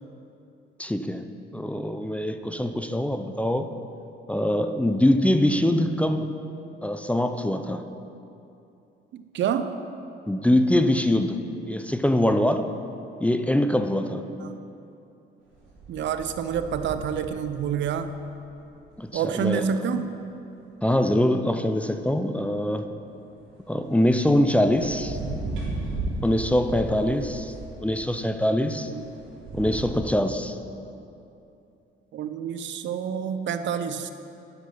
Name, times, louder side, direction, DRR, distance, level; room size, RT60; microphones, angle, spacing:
voice 1, 0.8-1.2 1.5-3.7 4.3-6.3 6.8-7.8 10.3-11.4 11.7-12.7 13.2-14.3 19.0-19.7 20.8-22.9 23.7-25.2 26.2-27.5 27.8-28.9 29.5-30.6, left 1 dB, 5° left, 8 dB, 0.4 m, -23 dB
voice 2, 9.1-9.7 14.4-14.6 15.9-18.2 19.1-20.1 28.9-29.1 32.1-34.1, right 7 dB, 65° right, 10 dB, 0.6 m, -28 dB
sound 1, 15.5-18.0 18.7-18.8 23.5-30.0, right 2 dB, 90° right, 2.3 m, -36 dB
9.1 x 5.9 x 5.7 m, 2.7 s
cardioid pair, 90°, 20 cm